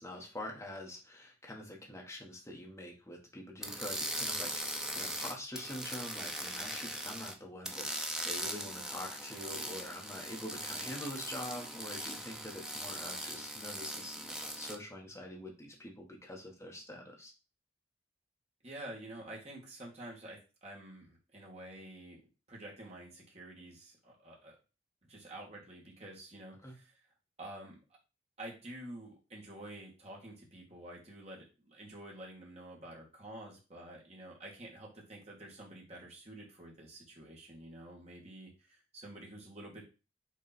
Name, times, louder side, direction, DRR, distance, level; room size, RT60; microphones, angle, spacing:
voice 1, 0.0-17.3 26.6-26.7, left 1 dB, 15° left, -1 dB, 1.7 m, -45 dB
sound 1, 3.6-7.3 7.6-14.8, right 1 dB, 5° right, 0.6 m, -40 dB
voice 2, 18.6-22.2 22.5-24.6 25.1-27.0 27.4-27.8 28.4-39.8, right 1 dB, 35° right, -2 dB, 2.3 m, -49 dB
6.5 x 3.7 x 4.4 m, 0.31 s
head